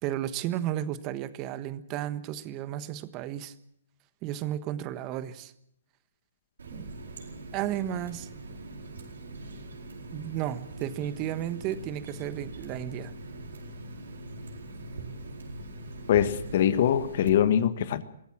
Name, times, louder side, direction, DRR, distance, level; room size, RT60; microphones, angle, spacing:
voice 1, 0.0-3.5 4.2-5.5 6.7-6.9 7.5-8.3 10.1-13.1, right 12 dB, 30° right, 13 dB, 1.3 m, -33 dB
Water tap faucet, 6.6-17.3, right 2 dB, 80° right, 4.7 m, -42 dB
voice 2, 16.1-18.0, left 10 dB, 55° left, 12 dB, 1.6 m, -23 dB
23.5 x 16.0 x 7.4 m, 0.74 s
hypercardioid pair, 130°, 0 cm